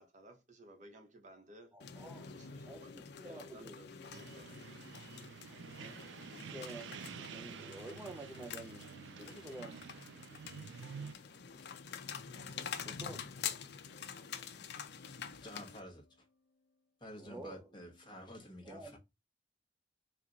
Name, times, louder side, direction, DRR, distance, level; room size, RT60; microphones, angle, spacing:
voice 1, 0.0-1.7 2.2-2.9 3.2-4.6, right 1 dB, 45° right, 1.1 m, -57 dB
voice 2, 1.7-2.3 2.6-4.1 5.8-8.9 9.2-10.0 12.8-13.3 17.2-17.8 18.6-19.0, right 1 dB, 10° right, 0.6 m, -50 dB
sound 1, 1.8-15.8, left 7 dB, 65° left, 0.5 m, -47 dB
sound 2, 4.1-11.1, right 6 dB, 75° right, 0.4 m, -49 dB
sound 3, 10.8-18.3, left 2 dB, 45° left, 1.0 m, -69 dB
voice 3, 15.3-16.2 17.0-19.0, left 1 dB, 25° left, 1.2 m, -50 dB
4.4 x 2.4 x 3.9 m
head